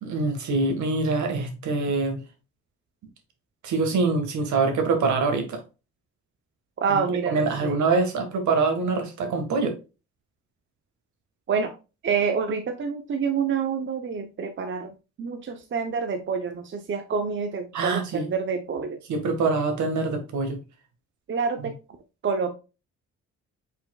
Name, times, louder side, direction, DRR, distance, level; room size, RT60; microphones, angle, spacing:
voice 1, 0.0-2.2 3.6-5.6 6.9-7.0 7.3-9.7 17.7-18.3 19.1-20.6, right 3 dB, 70° right, 1.5 m, -24 dB
voice 2, 6.8-7.4 7.6-7.8 11.5-11.7 12.0-19.0 21.3-21.7 22.2-22.5, right 5 dB, 40° right, 0.7 m, -27 dB
5.4 x 4.2 x 2.2 m
cardioid pair, 90°, 30 cm